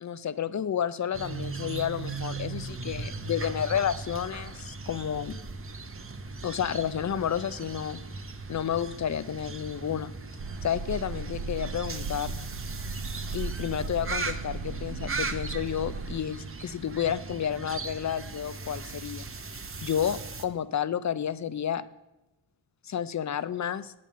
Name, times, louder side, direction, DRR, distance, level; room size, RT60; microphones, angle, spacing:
voice 1, 0.0-5.3 6.4-8.0 8.5-10.1 10.6-12.4 13.3-19.3 19.8-21.8 22.8-23.9, left 9 dB, 40° left, 16 dB, 0.4 m, -31 dB
sound 1, 1.1-20.5, right 4 dB, 25° right, 0.6 m, -38 dB
sound 2, 10.4-16.2, right 4 dB, 75° right, 0.9 m, -37 dB
8.6 x 5.3 x 7.4 m, 0.99 s
wide cardioid pair, 85°, 49 cm